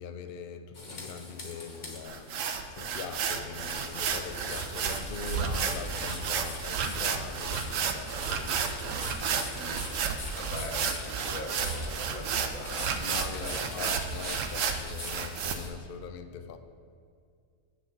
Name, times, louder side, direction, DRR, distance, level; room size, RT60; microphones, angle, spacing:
voice 1, 0.0-2.3 2.7-9.2 12.9-16.6, left 7 dB, 60° left, 9 dB, 0.6 m, -42 dB
sound 1, 0.7-15.7, left 2 dB, 35° left, 1.2 m, -43 dB
sound 2, 2.0-15.5, right 6 dB, 75° right, 1.0 m, -32 dB
voice 2, 9.5-10.0 10.3-13.0 13.3-13.9, left 2 dB, 80° left, 2 dB, 1.5 m, -41 dB
9.5 x 4.0 x 7.0 m, 2.3 s
omnidirectional pair, 1.4 m